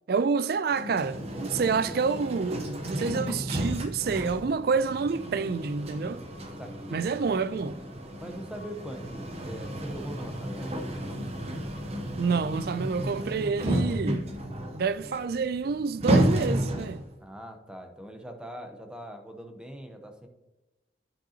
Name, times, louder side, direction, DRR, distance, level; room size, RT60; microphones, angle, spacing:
voice 1, 0.1-6.2 6.9-7.8 12.2-14.2 14.7-17.0, right 5 dB, 60° right, 0.4 m, -28 dB
sound 1, 0.7-17.1, right 1 dB, 35° right, 0.8 m, -32 dB
voice 2, 6.6-7.1 8.2-10.7 17.2-20.3, equal, 5° right, 0.8 m, -42 dB
11.5 x 5.3 x 2.8 m
head